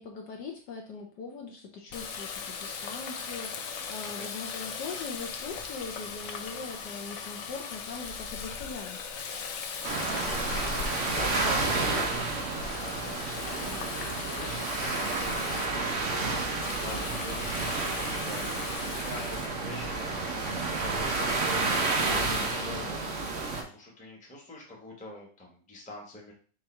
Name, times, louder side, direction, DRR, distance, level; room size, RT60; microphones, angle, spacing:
voice 1, 0.0-9.0 22.1-23.0, left 4 dB, 65° left, 1 dB, 1.2 m, -41 dB
Water tap faucet, 1.9-15.7 16.6-19.5, left 5 dB, 85° left, 0.7 m, -39 dB
voice 2, 9.7-26.3, left 1 dB, 5° left, -2 dB, 0.8 m, -45 dB
sound 1, 9.8-23.6, right 3 dB, 55° right, 0.8 m, -30 dB
4.6 x 2.6 x 4.3 m, 0.42 s
omnidirectional pair, 2.2 m